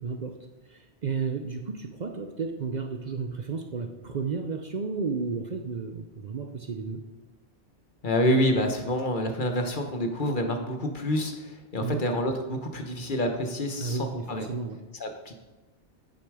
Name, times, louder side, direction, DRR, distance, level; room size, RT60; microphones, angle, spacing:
voice 1, 0.0-0.3 0.7-7.0 11.8-12.0 13.8-14.8, right 4 dB, 50° right, 6 dB, 0.7 m, -32 dB
voice 2, 8.0-14.5 15.0-15.4, equal, 50° left, 5 dB, 1.2 m, -27 dB
8.7 x 6.8 x 4.9 m, 1.1 s
omnidirectional pair, 1.1 m